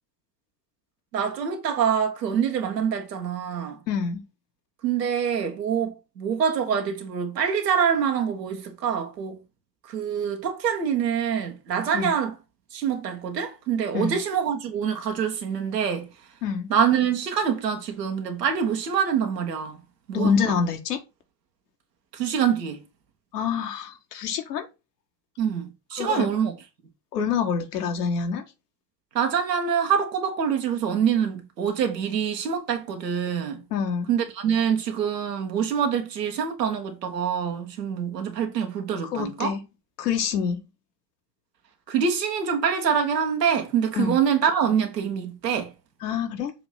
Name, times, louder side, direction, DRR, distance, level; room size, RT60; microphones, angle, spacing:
voice 1, 1.1-3.8 4.8-9.4 9.9-12.3 12.7-16.1 16.7-19.8 20.1-20.6 22.1-22.8 25.4-26.5 29.1-33.6 34.1-39.5 41.9-45.7, right 7 dB, 80° right, 1.7 m, -25 dB
voice 2, 3.9-4.2 11.9-12.1 13.9-14.2 16.4-16.7 20.1-21.0 23.3-24.7 26.0-26.3 27.1-28.4 33.7-34.1 39.0-39.6 40.0-40.6 43.9-44.2 46.0-46.5, left 6 dB, 70° left, 1.7 m, -26 dB
6.9 x 3.1 x 5.6 m
hypercardioid pair, 80°, 49 cm